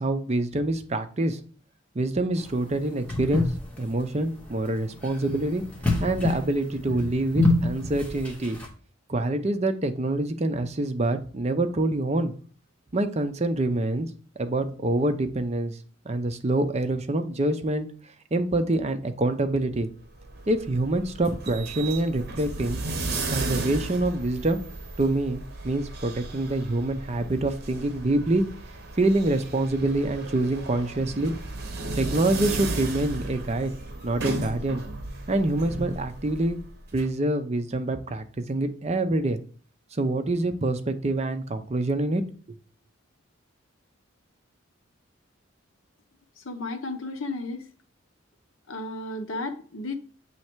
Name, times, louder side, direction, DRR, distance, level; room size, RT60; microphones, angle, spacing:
voice 1, 0.0-1.4 2.0-3.5 3.8-5.6 6.0-8.6 9.1-12.3 12.9-14.1 14.4-15.8 16.1-17.9 18.3-19.9 20.5-22.8 23.3-24.6 25.0-28.4 29.0-31.3 32.0-33.7 34.0-34.8 35.3-36.6 36.9-39.4 39.9-42.2 42.5-42.6, right 2 dB, 30° right, 0.5 m, -26 dB
sound 1, 2.4-8.7, left 2 dB, 5° left, 1.1 m, -28 dB
sound 2, 20.0-37.0, right 2 dB, 50° right, 1.0 m, -35 dB
voice 2, 46.4-47.7 48.7-50.0, left 2 dB, 70° left, 0.8 m, -33 dB
7.7 x 3.2 x 4.5 m
head